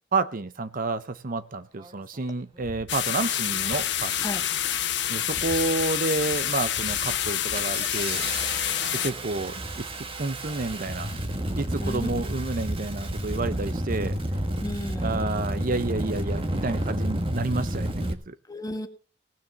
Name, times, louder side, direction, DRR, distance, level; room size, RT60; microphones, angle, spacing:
voice 1, 0.1-4.1 5.1-8.2 8.9-9.6 10.2-11.2 11.6-14.2 15.0-18.4, right 3 dB, 45° right, 13 dB, 0.8 m, -29 dB
Engine starting, 1.8-1.9 2.6-2.9 3.6-4.0 4.3-4.8 5.3-5.8 6.2-6.4 6.8-18.1, right 1 dB, 30° right, 1.6 m, -31 dB
sound 1, 2.9-9.1, left 10 dB, 65° left, 1.4 m, -27 dB
voice 2, 14.6-15.2 18.5-18.9, equal, 20° left, 8 dB, 1.5 m, -33 dB
18.0 x 6.9 x 6.8 m, 0.38 s
head